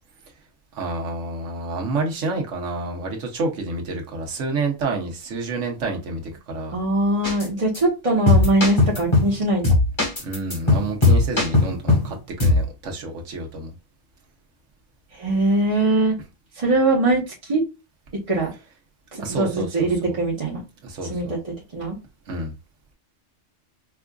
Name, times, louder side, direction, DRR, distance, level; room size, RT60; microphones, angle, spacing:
voice 1, 0.7-6.8 10.2-13.7 19.2-20.1 20.8-21.3 22.3-22.5, right 3 dB, 75° right, 1.3 m, -29 dB
voice 2, 6.7-9.7 15.1-16.1 16.5-17.6 18.1-18.5 19.1-20.6 21.1-21.4 21.7-22.0, right 2 dB, 30° right, 1.0 m, -21 dB
sound 1, 7.2-7.5 7.7-7.8 8.3-9.3 9.6-12.1 12.4-12.6, left 3 dB, 25° left, 1.1 m, -18 dB
4.7 x 2.4 x 2.3 m
omnidirectional pair, 1.3 m